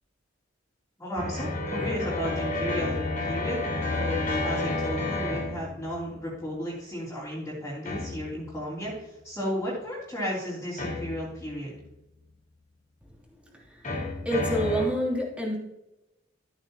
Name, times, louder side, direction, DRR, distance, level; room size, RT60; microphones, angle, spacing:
voice 1, 1.0-3.6 4.0-11.7, equal, 15° left, -10 dB, 3.3 m, -34 dB
sound 1, 1.2-6.2 7.8-8.6 10.8-11.6 13.8-14.9, left 2 dB, 45° left, 3.4 m, -30 dB
voice 2, 13.4-13.9 14.2-15.6, equal, 5° right, -3 dB, 3.0 m, -28 dB
13.5 x 9.0 x 2.9 m, 0.92 s
head